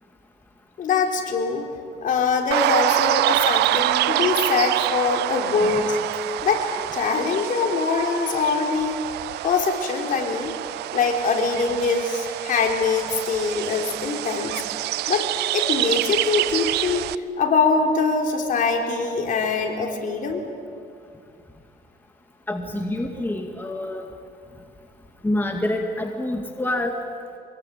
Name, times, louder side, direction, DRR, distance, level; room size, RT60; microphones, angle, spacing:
voice 1, 0.8-1.6 2.0-6.0 6.4-6.7 6.9-9.0 9.4-10.5 10.9-14.6 15.1-15.3 15.5-20.4, left 4 dB, 55° left, 2 dB, 4.1 m, -23 dB
sound 1, 2.5-17.2, right 16 dB, 80° right, 0.6 m, -26 dB
voice 2, 22.5-24.1 25.2-26.9, left 1 dB, 10° left, 3 dB, 2.2 m, -26 dB
24.5 x 22.5 x 8.6 m, 2.4 s
cardioid pair, 110°, 17 cm